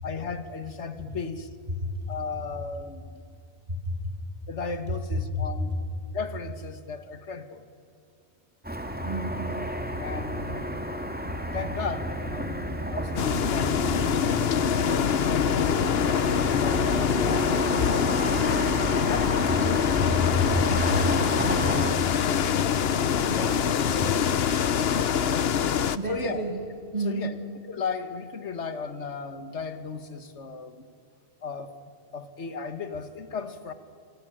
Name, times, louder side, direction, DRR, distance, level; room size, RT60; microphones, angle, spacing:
voice 1, 0.0-1.6 2.1-3.2 4.5-5.7 6.1-7.6 10.0-10.9 11.5-12.6 12.9-13.9 14.6-18.2 18.9-19.7 26.1-26.6 27.0-27.4 27.6-30.9 31.4-31.7 32.1-33.7, left 5 dB, 80° left, 11 dB, 1.9 m, -36 dB
voice 2, 3.7-4.1 5.3-5.4 9.0-9.5 20.0-21.3 21.6-22.1 23.3-24.3 26.0-26.6 26.9-27.4, left 1 dB, 35° right, 0 dB, 2.7 m, -30 dB
Car passing by / Traffic noise roadway noise, 8.6-21.9, equal, 10° right, 2.1 m, -32 dB
sound 1, 13.2-26.0, left 8 dB, 65° left, 1.0 m, -24 dB
25.5 x 24.5 x 9.0 m, 2.5 s
omnidirectional pair, 1.2 m